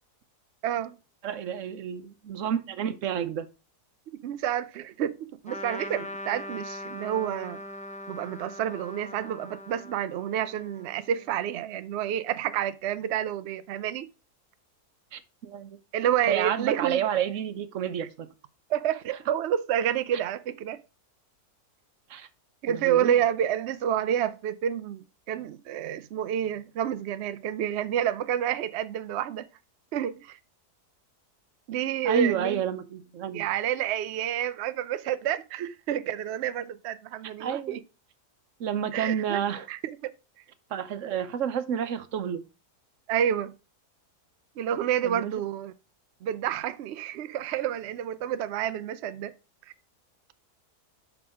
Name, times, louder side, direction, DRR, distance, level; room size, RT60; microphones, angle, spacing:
voice 1, 0.6-0.9 4.2-5.2 5.4-7.6 8.1-14.1 15.9-17.0 18.0-18.1 18.7-20.8 22.6-29.5 29.9-30.4 31.7-32.6 33.3-37.8 38.9-39.4 39.7-40.1 43.1-43.5 44.6-45.7 46.2-49.3, right 10 dB, 75° right, 0.6 m, -29 dB
voice 2, 1.2-3.5 15.1-15.8 16.3-18.3 22.1-22.3 22.7-23.2 32.0-33.5 37.4-37.8 38.6-39.7 40.7-42.4 45.0-45.3, right 8 dB, 60° right, 1.0 m, -30 dB
Trumpet, 5.5-11.3, left 1 dB, 5° left, 0.6 m, -41 dB
6.0 x 6.0 x 4.8 m
omnidirectional pair, 1.7 m